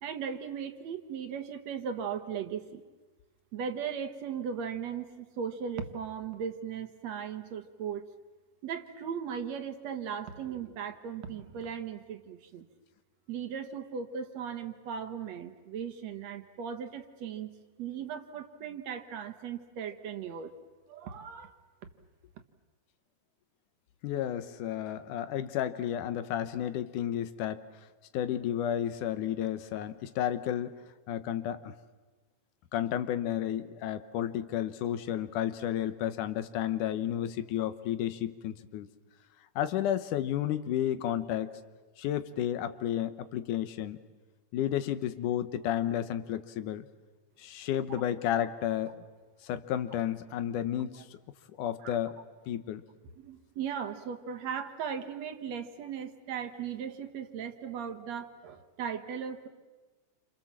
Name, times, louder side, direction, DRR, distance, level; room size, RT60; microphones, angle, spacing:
voice 1, 0.0-2.8 3.5-8.0 8.6-12.7 13.3-17.5 17.8-20.5 20.9-21.5 51.8-51.9 53.2-59.5, right 7 dB, 65° right, 8 dB, 2.4 m, -37 dB
voice 2, 24.0-27.6 28.1-30.8 31.1-31.7 32.7-38.9 39.6-41.5 42.0-44.0 44.5-46.9 47.4-49.0 49.4-51.1 51.6-52.2 52.5-52.8, left 11 dB, 90° left, 11 dB, 2.6 m, -32 dB
28.5 x 27.0 x 7.4 m, 1.3 s
omnidirectional pair, 3.5 m